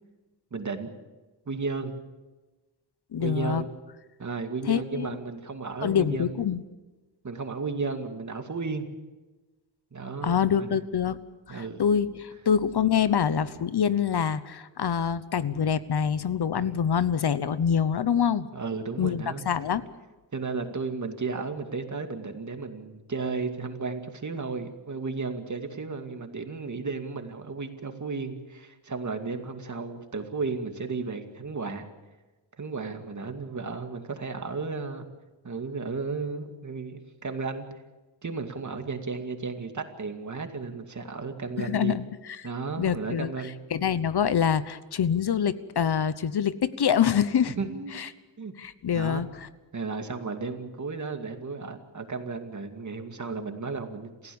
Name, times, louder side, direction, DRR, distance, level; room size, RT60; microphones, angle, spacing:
voice 1, 0.5-0.9 1.5-1.9 3.2-3.7 4.2-6.4 7.2-8.9 9.9-10.8 11.5-11.8 16.6-16.7 18.5-19.5 20.3-31.9 32.6-35.0 35.4-37.7 38.2-42.0 42.4-43.6 47.5-48.0 48.4-48.5 48.9-49.2 49.7-54.4, right 4 dB, 40° right, 6 dB, 2.4 m, -34 dB
voice 2, 3.1-3.6 4.7-5.1 5.8-6.6 10.2-11.2 11.5-18.5 19.0-19.9 41.6-42.1 42.4-42.5 42.8-43.3 43.7-47.5 47.9-48.1 48.6-49.5, left 8 dB, 60° left, 15 dB, 1.0 m, -25 dB
28.0 x 16.0 x 7.1 m, 1.2 s
wide cardioid pair, 115°, 44 cm